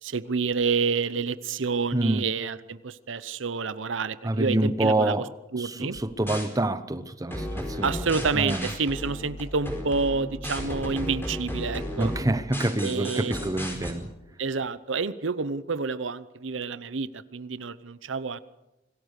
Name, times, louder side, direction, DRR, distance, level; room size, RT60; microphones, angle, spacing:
voice 1, 0.0-5.2 5.5-6.0 7.8-12.1 12.8-13.3 14.4-18.4, right 4 dB, 80° right, 0.8 m, -28 dB
voice 2, 1.9-2.2 4.2-5.3 5.6-8.1 8.3-8.7 12.0-14.1, right 1 dB, 20° right, 1.0 m, -27 dB
sound 1, 5.9-6.5 7.3-13.9, equal, 10° left, 4.7 m, -34 dB
26.0 x 17.5 x 6.6 m
head